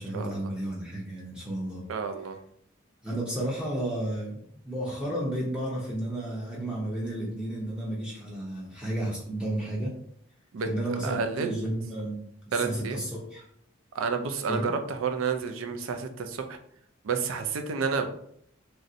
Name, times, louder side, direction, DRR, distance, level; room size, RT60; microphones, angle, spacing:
voice 1, 0.0-1.8 3.0-9.9 10.6-13.5 14.5-14.7, right 1 dB, 5° right, -5 dB, 0.6 m, -32 dB
voice 2, 1.9-2.4 10.5-10.7 11.0-11.5 12.5-13.0 13.9-16.6 17.0-18.1, right 5 dB, 90° right, 7 dB, 0.4 m, -30 dB
3.1 x 2.6 x 2.6 m, 0.68 s
head